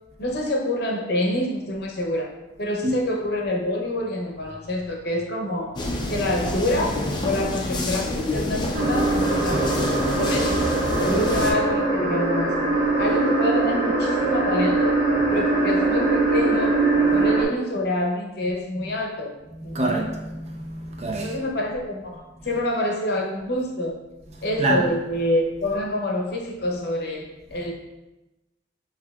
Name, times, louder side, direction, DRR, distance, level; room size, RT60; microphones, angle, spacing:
voice 1, 0.2-2.3 2.6-5.8 6.1-7.0 7.2-10.6 11.0-12.6 13.0-15.0 15.3-19.3 19.6-20.0 21.2-24.0 24.4-27.7, left 1 dB, 55° left, 0.7 m, -27 dB
sound 1, 5.8-11.5, left 1 dB, 25° left, 0.4 m, -27 dB
voice 2, 5.9-6.3 10.9-11.1 17.0-17.2 18.8-18.9 19.5-21.4 24.6-24.9, right 2 dB, 35° right, 0.5 m, -27 dB
sound 2, 8.7-17.4, right 2 dB, 65° right, 1.4 m, -22 dB
7.2 x 2.7 x 2.3 m
head